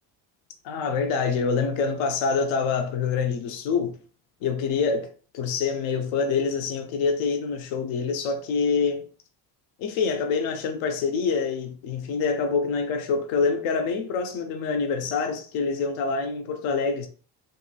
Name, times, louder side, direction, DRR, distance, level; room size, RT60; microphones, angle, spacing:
voice 1, 0.6-4.0 4.4-9.1 9.8-17.1, left 5 dB, 70° left, 0.6 m, -26 dB
2.9 x 2.7 x 2.2 m
supercardioid pair, 65°, 48 cm